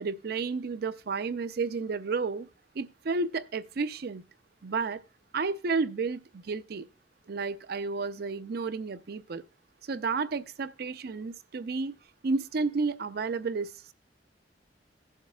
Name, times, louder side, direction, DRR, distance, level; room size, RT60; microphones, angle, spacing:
voice 1, 0.0-2.5 2.7-4.2 4.6-5.0 5.3-6.9 7.3-9.4 9.8-11.9 12.2-13.7, right 4 dB, 60° right, 0.5 m, -31 dB
17.0 x 7.3 x 2.3 m
head